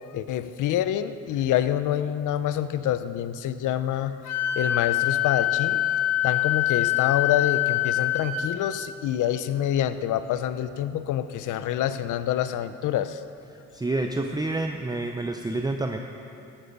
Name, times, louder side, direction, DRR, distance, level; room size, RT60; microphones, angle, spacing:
voice 1, 0.1-4.2 4.6-5.8 6.2-13.2, left 11 dB, 80° left, 12 dB, 0.7 m, -26 dB
Wind instrument woodwind instrument, 4.2-8.5, left 13 dB, 60° left, 1.6 m, -24 dB
voice 2, 13.7-16.0, right 2 dB, 15° right, 4 dB, 0.7 m, -28 dB
14.5 x 12.5 x 5.4 m, 2.6 s
cardioid pair, 90°, 30 cm